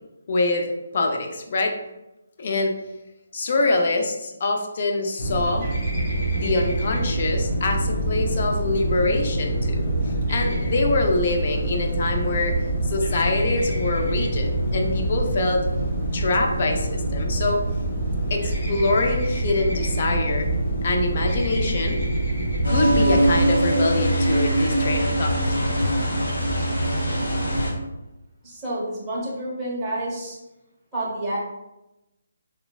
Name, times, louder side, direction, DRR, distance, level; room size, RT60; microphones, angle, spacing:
voice 1, 0.3-1.7 2.4-2.7 3.3-5.7 6.3-9.9 10.3-12.6 12.9-15.7 16.1-17.6 18.3-20.5 20.8-22.0 22.7-25.4, left 2 dB, 45° left, 3 dB, 0.4 m, -24 dB
sound 1, 5.2-23.6, right 1 dB, 25° left, 1.4 m, -25 dB
sound 2, 22.6-27.7, right 1 dB, 85° left, 1.2 m, -22 dB
voice 2, 28.4-30.4 30.9-31.4, right 1 dB, 10° right, -9 dB, 0.9 m, -29 dB
3.1 x 2.0 x 2.3 m, 0.95 s
hypercardioid pair, 160°, 0 cm